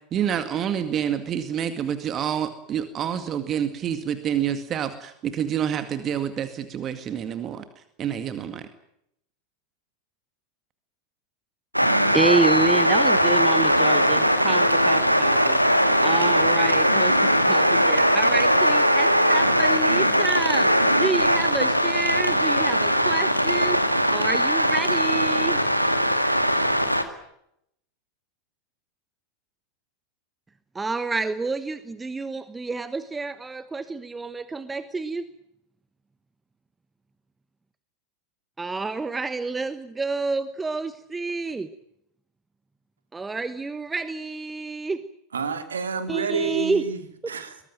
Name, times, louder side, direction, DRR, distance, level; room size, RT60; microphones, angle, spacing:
voice 1, 0.1-7.6 8.0-8.7, right 9 dB, 30° right, 10 dB, 2.1 m, -28 dB
sound 1, 11.7-27.0, equal, 90° right, 2.0 m, -20 dB
voice 2, 11.8-20.7 21.0-23.8 24.1-25.6 30.7-35.3 38.6-41.7 43.1-45.0 46.1-46.8, right 3 dB, 15° right, 13 dB, 1.2 m, -29 dB
voice 3, 45.3-47.6, right 5 dB, 70° right, 9 dB, 2.8 m, -29 dB
23.5 x 19.5 x 9.2 m, 0.76 s
figure-of-eight pair, 85°, 0 cm